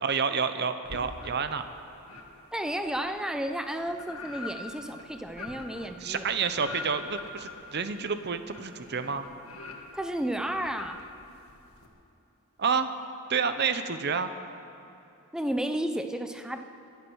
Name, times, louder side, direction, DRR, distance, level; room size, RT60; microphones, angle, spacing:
voice 1, 0.0-1.6 6.0-9.3 12.6-12.9 13.3-14.3, right 5 dB, 50° right, 10 dB, 0.8 m, -29 dB
sound 1, 0.8-1.7 2.0-11.9, left 3 dB, 75° left, 1.7 m, -44 dB
voice 2, 2.5-6.3 9.9-11.0 15.3-16.6, right 1 dB, 5° right, 7 dB, 0.6 m, -32 dB
24.0 x 8.4 x 6.3 m, 2.8 s
head